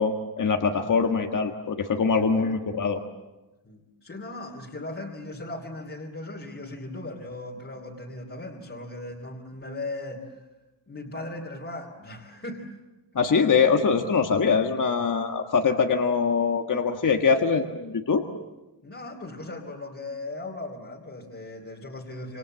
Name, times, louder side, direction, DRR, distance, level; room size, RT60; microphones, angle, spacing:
voice 1, 0.0-3.0 13.1-18.2, left 5 dB, 45° left, 4 dB, 1.7 m, -23 dB
voice 2, 2.1-2.6 3.6-10.5 10.9-12.8 18.8-22.4, left 2 dB, 30° left, -2 dB, 3.0 m, -38 dB
28.0 x 27.5 x 7.5 m, 1.1 s
wide cardioid pair, 150°, 42 cm